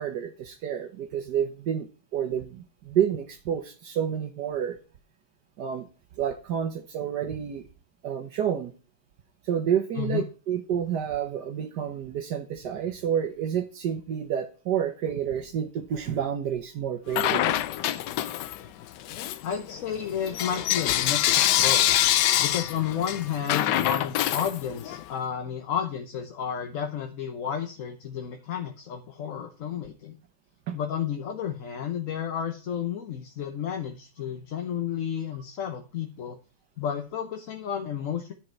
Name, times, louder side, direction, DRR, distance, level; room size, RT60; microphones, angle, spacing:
voice 1, 0.0-4.8 5.6-5.9 6.2-7.7 8.0-8.7 9.4-17.6 30.7-30.8, right 9 dB, 70° right, 5 dB, 1.5 m, -29 dB
Bell / Coin (dropping), 17.1-18.7 19.1-25.0, left 13 dB, 80° left, 1.3 m, -25 dB
voice 2, 19.4-22.0 22.4-30.2 30.7-36.4 36.8-38.3, left 8 dB, 55° left, 5 dB, 1.2 m, -32 dB
10.5 x 5.4 x 4.4 m, 0.35 s
omnidirectional pair, 1.9 m